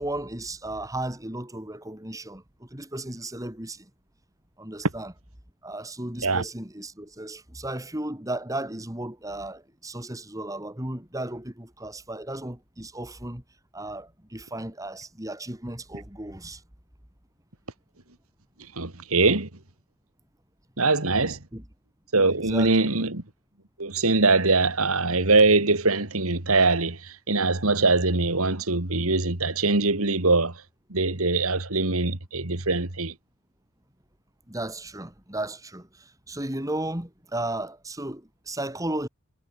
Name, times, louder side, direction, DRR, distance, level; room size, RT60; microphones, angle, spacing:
voice 1, 0.0-3.9 4.6-5.1 5.6-13.4 13.7-16.6 21.5-21.6 22.3-22.9 34.5-39.1, right 1 dB, 15° right, 2.8 m, -35 dB
voice 2, 18.8-19.5 20.8-21.4 22.1-23.2 23.8-27.0 27.3-30.5 30.9-33.1, right 3 dB, 75° right, 2.9 m, -22 dB
head